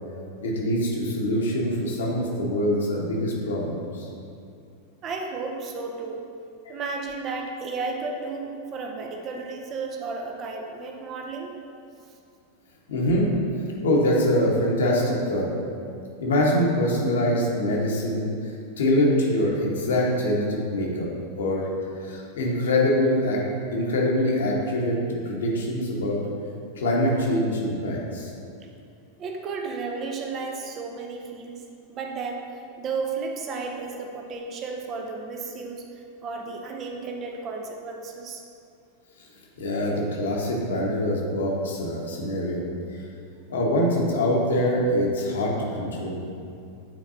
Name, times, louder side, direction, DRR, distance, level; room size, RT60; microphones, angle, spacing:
voice 1, 0.4-4.1 12.9-13.3 13.8-15.5 16.2-18.3 18.8-21.1 21.4-21.7 22.0-23.4 23.7-25.0 25.2-26.2 26.7-28.3 39.6-42.6 43.5-46.2, left 1 dB, 65° left, -3 dB, 1.3 m, -24 dB
voice 2, 5.0-6.3 6.7-11.5 29.2-31.6 31.9-32.4 32.8-35.8 36.2-38.4, right 4 dB, 30° right, 2 dB, 0.8 m, -33 dB
9.1 x 4.5 x 2.8 m, 2.4 s
figure-of-eight pair, 90°, 0 cm